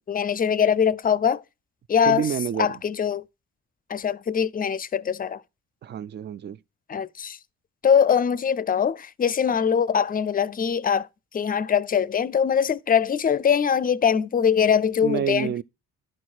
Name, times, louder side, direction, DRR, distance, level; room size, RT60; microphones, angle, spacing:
voice 1, 0.1-1.4 1.9-2.3 2.6-3.2 3.9-5.4 6.9-7.4 7.8-11.1 11.3-15.5, left 7 dB, 30° left, 0.5 m, -22 dB
voice 2, 2.1-2.8 5.8-6.6 15.0-15.6, right 9 dB, 35° right, 0.4 m, -28 dB
11.5 x 4.7 x 4.3 m
cardioid pair, 90°, 30 cm